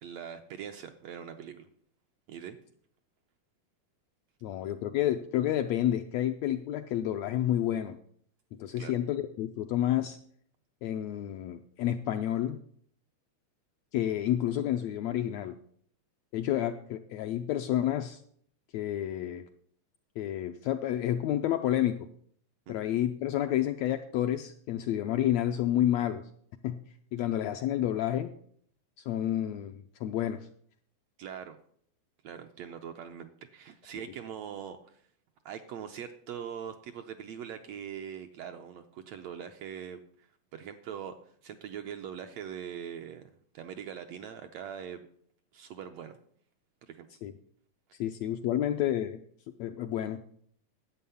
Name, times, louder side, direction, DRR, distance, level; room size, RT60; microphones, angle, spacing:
voice 1, 0.0-1.7 2.3-2.6 8.8-8.9 22.7-22.8 31.2-31.6 32.2-35.0 35.4-41.1 41.4-45.1 45.5-46.2 46.9-47.1, right 8 dB, 75° right, 6 dB, 1.6 m, -42 dB
voice 2, 4.4-8.0 8.6-10.2 10.8-12.6 13.9-15.5 16.3-18.2 18.7-19.4 20.2-22.0 22.7-26.2 26.6-26.8 27.1-28.3 29.0-30.4 47.2-47.3 48.0-49.2 49.6-50.2, left 12 dB, 80° left, 7 dB, 1.6 m, -29 dB
11.5 x 8.4 x 6.9 m, 0.62 s
omnidirectional pair, 3.6 m